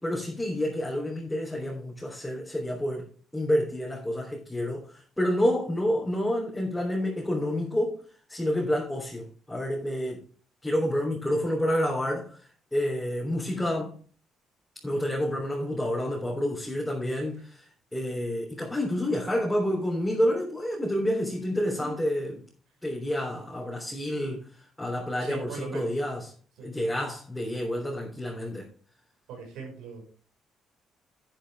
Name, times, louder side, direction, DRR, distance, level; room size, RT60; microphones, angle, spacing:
voice 1, 0.0-3.1 3.3-8.0 8.3-10.2 10.6-14.0 14.8-22.4 22.8-26.3 26.6-28.7, equal, 10° left, 3.5 m, -29 dB
voice 2, 25.2-25.9 26.6-26.7 29.3-30.0, right 4 dB, 85° right, 5.7 m, -39 dB
10.5 x 9.4 x 3.5 m
cardioid pair, 80°, 0 cm